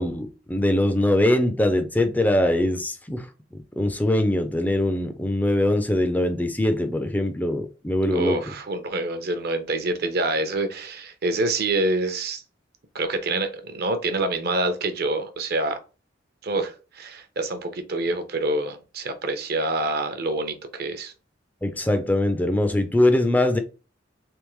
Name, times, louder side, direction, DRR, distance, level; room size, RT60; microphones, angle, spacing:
voice 1, 0.0-3.3 3.8-8.4 21.6-23.6, left 1 dB, 10° left, 0.4 m, -22 dB
voice 2, 8.1-12.4 12.9-15.8 16.4-21.1, right 2 dB, 55° right, 0.7 m, -26 dB
3.5 x 3.3 x 3.1 m
head